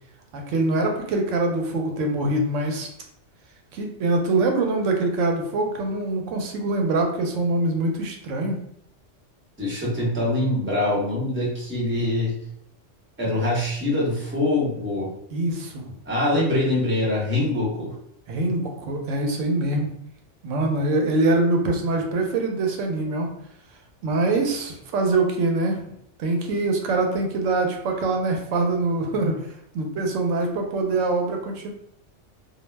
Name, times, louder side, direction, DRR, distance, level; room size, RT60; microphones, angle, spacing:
voice 1, 0.3-2.9 3.7-8.6 15.3-15.9 18.3-20.0 20.4-23.3 24.0-25.9 26.2-29.5 29.7-31.7, right 2 dB, 85° right, 2 dB, 0.9 m, -24 dB
voice 2, 9.6-12.4 13.2-15.1 16.0-17.9, left 1 dB, 10° right, -6 dB, 0.7 m, -24 dB
2.3 x 2.0 x 3.1 m, 0.70 s
omnidirectional pair, 1.2 m